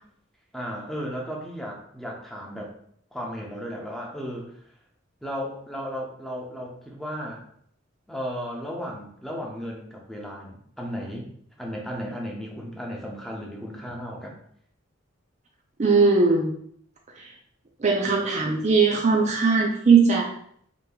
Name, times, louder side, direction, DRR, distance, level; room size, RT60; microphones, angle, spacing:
voice 1, 0.5-2.7 3.1-4.5 5.2-7.4 8.1-11.3 11.6-14.4, equal, ahead, -2 dB, 0.7 m, -35 dB
voice 2, 15.8-16.5 17.8-20.3, right 4 dB, 35° right, 0 dB, 0.4 m, -19 dB
5.1 x 2.9 x 2.3 m, 0.64 s
head